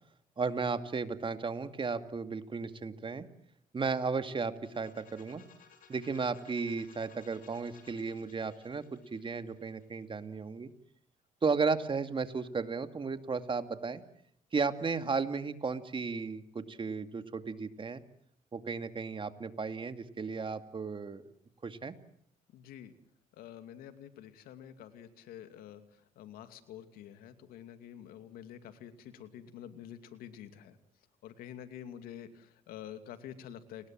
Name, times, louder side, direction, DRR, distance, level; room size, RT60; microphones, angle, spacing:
voice 1, 0.4-3.3 3.7-5.4 5.9-10.7 11.4-14.0 14.5-18.0 18.5-21.2 21.6-21.9, right 4 dB, 35° right, 9 dB, 2.5 m, -34 dB
sound 1, 4.5-10.3, left 6 dB, 70° left, 8.0 m, -60 dB
voice 2, 22.5-22.9 23.3-30.8 31.2-33.9, left 10 dB, 85° left, 9 dB, 2.6 m, -48 dB
30.0 x 21.0 x 7.7 m, 0.67 s
cardioid pair, 85°, 15 cm